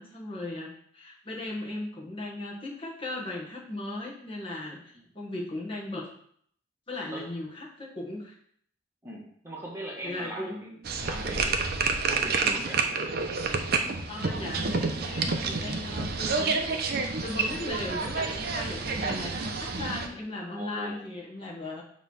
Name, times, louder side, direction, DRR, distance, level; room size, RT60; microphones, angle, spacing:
voice 1, 0.0-6.1 6.9-8.4 10.0-10.6 13.7-21.8, left 2 dB, 30° left, -3 dB, 1.5 m, -37 dB
voice 2, 9.0-12.8 20.5-21.0, right 1 dB, 15° right, -3 dB, 1.2 m, -40 dB
sound 1, 10.8-20.1, right 4 dB, 55° right, 0.7 m, -29 dB
7.0 x 3.2 x 5.5 m, 0.63 s
head